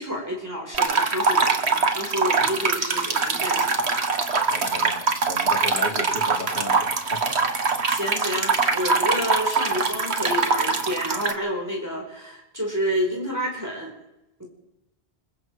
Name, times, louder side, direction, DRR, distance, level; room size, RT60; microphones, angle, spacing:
voice 1, 0.0-4.0 7.9-13.9, equal, 15° right, 0 dB, 4.8 m, -29 dB
sound 1, 0.7-11.3, right 4 dB, 90° right, 1.8 m, -23 dB
voice 2, 4.5-5.0 5.3-7.4, left 1 dB, 60° left, -2 dB, 4.6 m, -34 dB
28.5 x 22.0 x 4.7 m, 0.92 s
omnidirectional pair, 1.1 m